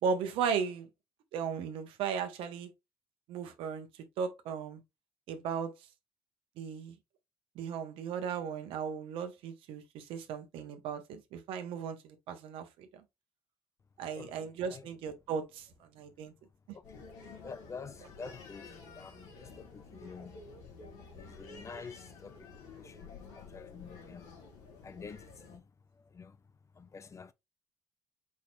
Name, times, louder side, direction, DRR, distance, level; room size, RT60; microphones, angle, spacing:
voice 1, 0.0-0.9 1.3-2.7 3.3-3.9 4.2-4.8 5.3-5.7 6.6-6.9 7.5-12.9 14.0-16.3, right 6 dB, 75° right, 1.1 m, -36 dB
voice 2, 14.2-14.8 16.7-17.1 17.4-20.4 21.1-24.3 24.8-25.6 26.1-26.4 26.8-27.3, left 5 dB, 35° left, 0.6 m, -48 dB
sound 1, 16.8-25.6, left 4 dB, 85° left, 2.1 m, -51 dB
4.9 x 4.3 x 2.5 m
supercardioid pair, 65°, 9 cm